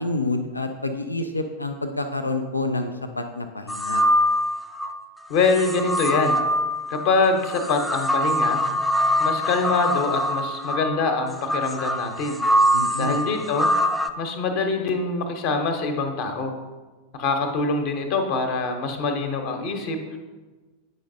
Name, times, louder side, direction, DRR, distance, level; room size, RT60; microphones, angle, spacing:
voice 1, 0.0-2.9 3.2-4.0 12.7-13.2, left 2 dB, 80° left, 7 dB, 0.4 m, -28 dB
sound 1, 3.7-4.9 5.5-14.1, equal, ahead, 0.4 m, -23 dB
voice 2, 5.3-6.4 6.9-8.6 9.2-12.4 13.0-13.7 14.2-16.5 17.1-20.0, left 3 dB, 45° left, 5 dB, 0.9 m, -24 dB
8.9 x 5.2 x 2.7 m, 1.3 s
figure-of-eight pair, 90°, 0 cm